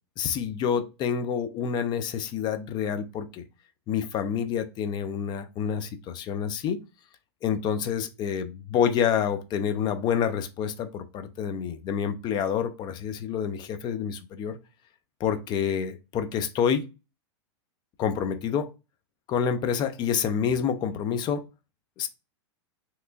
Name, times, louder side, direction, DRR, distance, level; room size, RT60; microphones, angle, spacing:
voice 1, 0.2-3.4 3.9-6.8 7.4-14.6 15.2-16.8 18.0-18.7 19.3-21.4 22.0-22.1, left 7 dB, 30° left, 0.4 m, -28 dB
3.2 x 2.9 x 2.5 m
hypercardioid pair, 115°, 14 cm